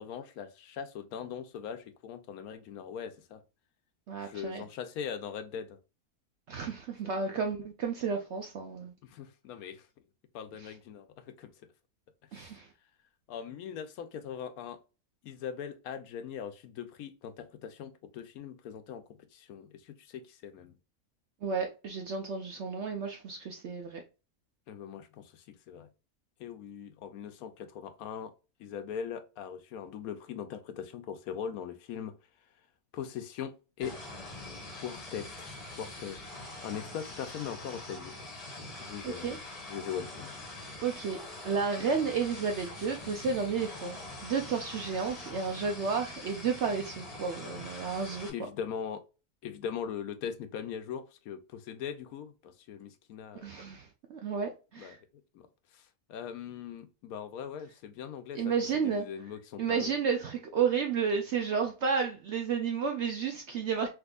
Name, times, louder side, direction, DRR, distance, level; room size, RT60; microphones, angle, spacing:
voice 1, 0.0-3.4 4.2-5.8 7.1-7.4 9.0-9.9 10.3-11.5 12.3-12.6 13.3-14.8 15.2-20.8 24.7-25.9 26.4-28.3 28.6-32.1 32.9-34.0 34.7-36.2 36.6-38.2 38.8-39.4 39.7-40.4 47.9-48.0 48.3-49.0 49.4-53.5 54.8-55.0 55.3-59.9, left 8 dB, 75° left, 1.0 m, -41 dB
voice 2, 4.1-4.6 6.5-8.9 10.6-10.7 12.3-12.7 21.4-24.0 39.0-39.4 40.8-41.2 41.4-48.3 53.3-55.0 58.3-59.1 59.6-63.9, right 6 dB, 65° right, 0.7 m, -32 dB
Strong wind voice FX, 33.8-48.3, left 2 dB, 30° left, 1.0 m, -44 dB
3.5 x 2.8 x 2.3 m
omnidirectional pair, 1.6 m